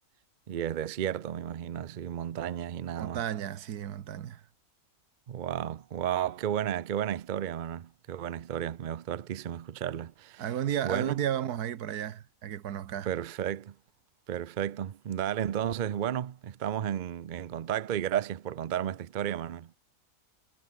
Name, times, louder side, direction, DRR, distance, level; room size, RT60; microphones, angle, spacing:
voice 1, 0.5-3.2 5.3-10.4 10.8-11.2 13.1-13.7 14.3-19.8, right 10 dB, 65° right, 0.4 m, -33 dB
voice 2, 3.0-4.4 10.4-13.1, right 10 dB, 80° right, 1.5 m, -33 dB
omnidirectional pair, 1.6 m